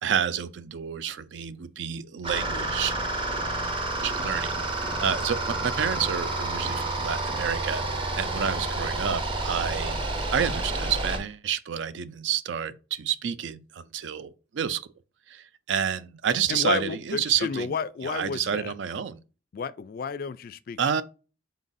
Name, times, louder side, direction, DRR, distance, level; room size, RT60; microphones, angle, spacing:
voice 1, 0.0-2.9 4.0-10.0 10.3-14.8 15.3-17.8 18.0-19.2 20.8-21.0, right 8 dB, 65° right, 0.4 m, -29 dB
sound 1, 2.2-11.2, right 2 dB, 25° right, 0.7 m, -29 dB
voice 2, 16.5-18.7 19.5-21.0, left 6 dB, 50° left, 0.3 m, -32 dB
3.9 x 3.9 x 2.6 m
head